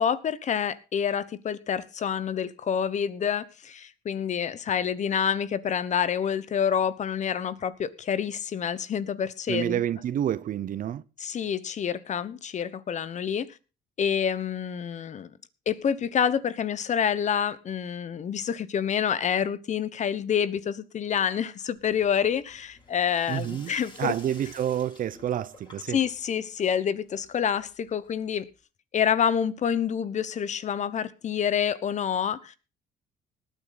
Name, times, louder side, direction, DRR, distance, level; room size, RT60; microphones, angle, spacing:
voice 1, 0.0-9.8 11.2-13.5 14.0-15.3 15.7-24.2 25.9-28.5 28.9-32.6, left 8 dB, 45° left, 1.2 m, -27 dB
voice 2, 9.5-11.0 23.3-26.0, right 10 dB, 55° right, 0.9 m, -29 dB
Sink (filling or washing), 21.7-28.5, left 2 dB, 25° left, 6.5 m, -53 dB
19.0 x 9.3 x 4.1 m
cardioid pair, 110°, 17 cm